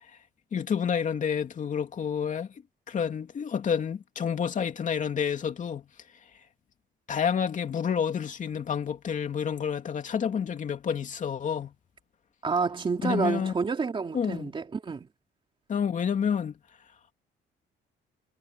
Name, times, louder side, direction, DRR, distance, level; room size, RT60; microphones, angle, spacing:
voice 1, 0.5-2.5 2.9-5.8 7.1-11.7 13.0-13.5 14.1-14.5 15.7-16.6, left 7 dB, 40° left, 2.6 m, -29 dB
voice 2, 12.4-15.1, right 4 dB, 25° right, 2.8 m, -29 dB
cardioid pair, 135°, 20 cm